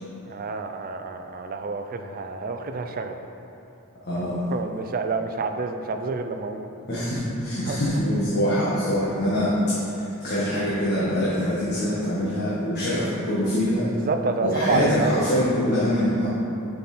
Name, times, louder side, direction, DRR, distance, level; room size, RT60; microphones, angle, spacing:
voice 1, 0.3-3.2 4.1-4.2 4.5-6.7 7.6-7.8 14.0-15.3, right 4 dB, 40° right, 7 dB, 0.4 m, -28 dB
voice 2, 4.1-4.4 6.9-9.6 9.8-13.9 14.4-16.3, equal, 50° left, -9 dB, 1.4 m, -24 dB
7.5 x 5.5 x 4.3 m, 2.8 s
head